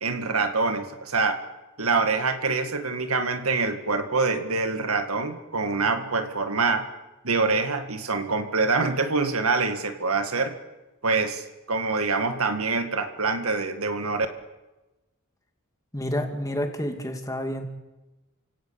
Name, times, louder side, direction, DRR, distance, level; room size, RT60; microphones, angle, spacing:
voice 1, 0.0-1.4 1.8-6.9 7.2-10.6 11.0-14.3, right 4 dB, 85° right, 7 dB, 2.0 m, -25 dB
voice 2, 15.9-17.7, equal, 15° left, 4 dB, 2.4 m, -29 dB
29.0 x 17.0 x 7.1 m, 1.1 s
head